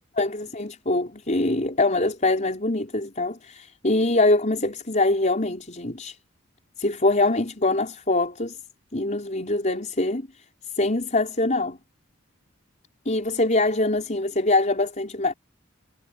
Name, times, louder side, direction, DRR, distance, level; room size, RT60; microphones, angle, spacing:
voice 1, 0.2-6.2 6.8-8.6 8.9-10.3 10.7-11.8 13.1-15.3, left 2 dB, 35° left, 5.3 m, -23 dB
head